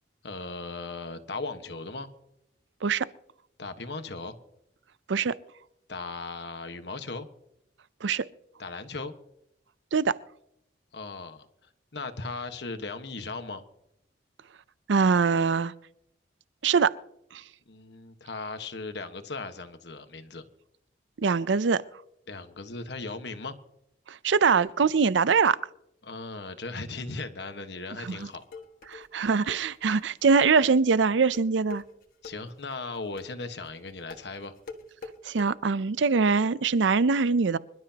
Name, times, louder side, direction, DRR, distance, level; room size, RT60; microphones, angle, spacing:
voice 1, 0.2-2.1 3.6-4.4 5.9-7.3 8.6-9.1 10.9-11.5 11.9-13.6 17.7-20.4 22.3-23.6 26.0-28.4 32.2-34.5, left 3 dB, 65° left, 1.4 m, -37 dB
voice 2, 14.9-15.7 16.6-16.9 17.3-17.4 21.2-21.8 24.1-25.6 28.0-28.3 28.9-31.8 35.2-37.6, right 5 dB, 85° right, 0.5 m, -23 dB
sound 1, 28.0-35.5, left 4 dB, 50° left, 1.7 m, -45 dB
26.0 x 12.5 x 2.9 m
head